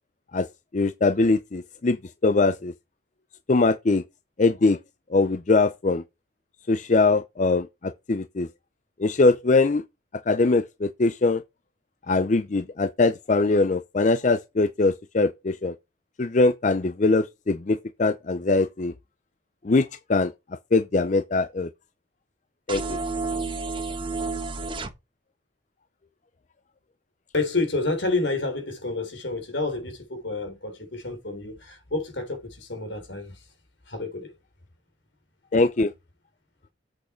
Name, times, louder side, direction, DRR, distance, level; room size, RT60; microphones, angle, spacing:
voice 1, 0.7-2.0 2.2-2.7 3.5-4.0 4.4-4.8 5.1-6.0 6.7-8.5 9.0-9.8 10.3-11.4 12.1-15.7 16.2-18.9 19.6-20.3 20.7-21.7 22.7-23.0 35.5-35.9, left 3 dB, 40° left, 0.5 m, -22 dB
sound 1, 22.7-24.9, right 3 dB, 25° right, 1.2 m, -30 dB
voice 2, 27.3-33.3 33.9-34.3, left 3 dB, 65° left, 3.8 m, -29 dB
8.1 x 6.5 x 4.5 m
head